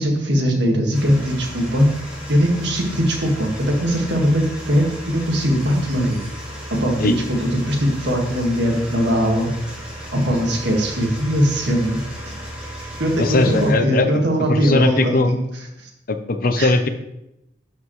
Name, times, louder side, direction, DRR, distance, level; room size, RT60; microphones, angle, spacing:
voice 1, 0.0-1.9 2.3-6.2 6.7-9.5 10.1-12.0 12.3-12.4 12.8-15.9 16.6-16.7, equal, 60° right, 1 dB, 1.8 m, -20 dB
sound 1, 0.9-13.7, equal, 5° right, 3.0 m, -34 dB
voice 2, 13.2-14.1 14.4-15.4 16.1-16.9, left 2 dB, 50° left, 8 dB, 0.7 m, -19 dB
12.5 x 5.5 x 3.2 m, 0.87 s
head